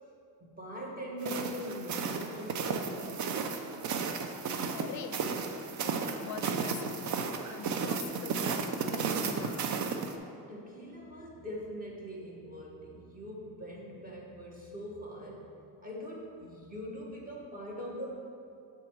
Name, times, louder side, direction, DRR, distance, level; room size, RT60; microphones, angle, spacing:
voice 1, 0.4-3.6 10.5-15.5 15.8-18.1, equal, 25° right, -2 dB, 1.2 m, -42 dB
sound 1, 1.2-10.1, right 5 dB, 55° right, 0.6 m, -34 dB
voice 2, 4.7-5.4 5.8-7.2 7.5-9.7, left 8 dB, 55° left, 9 dB, 0.5 m, -44 dB
7.1 x 3.7 x 4.5 m, 2.5 s
cardioid pair, 110°, 35 cm